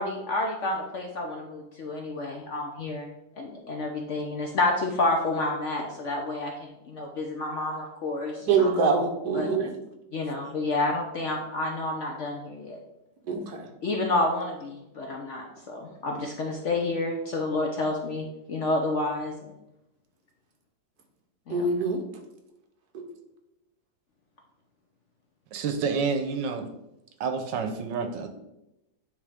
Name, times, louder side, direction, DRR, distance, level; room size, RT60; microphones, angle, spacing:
voice 1, 0.0-3.1 3.4-8.7 9.3-9.5 10.1-12.8 13.8-19.5 21.5-21.7, left 2 dB, 55° left, 1 dB, 0.8 m, -29 dB
voice 2, 8.5-9.7 13.3-13.7 21.5-22.0 22.9-23.0, right 4 dB, 65° right, 3 dB, 1.4 m, -24 dB
voice 3, 25.5-26.7 27.2-28.3, right 5 dB, 85° right, 7 dB, 1.4 m, -29 dB
9.4 x 3.3 x 3.5 m, 0.90 s
omnidirectional pair, 1.9 m